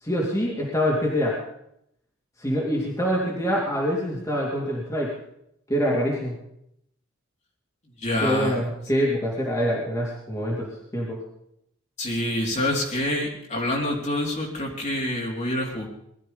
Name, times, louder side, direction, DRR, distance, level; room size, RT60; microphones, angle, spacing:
voice 1, 0.0-1.4 2.4-5.1 5.7-6.3 8.2-11.2, equal, 15° left, -4 dB, 2.9 m, -25 dB
voice 2, 8.0-8.6 12.0-15.9, left 1 dB, 35° left, -1 dB, 4.0 m, -26 dB
20.5 x 13.0 x 5.3 m, 0.76 s
head